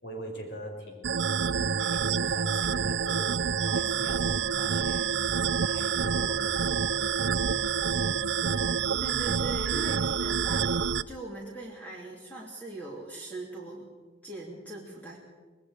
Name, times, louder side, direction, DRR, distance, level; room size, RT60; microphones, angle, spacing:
voice 1, 0.0-1.2 1.8-5.1 5.6-7.9, equal, 75° left, 2 dB, 5.2 m, -43 dB
sound 1, 1.0-11.0, right 6 dB, 80° right, 0.5 m, -27 dB
voice 2, 9.0-13.9 14.2-15.2, right 2 dB, 10° left, -3 dB, 3.0 m, -41 dB
26.0 x 19.5 x 5.1 m, 1.4 s
head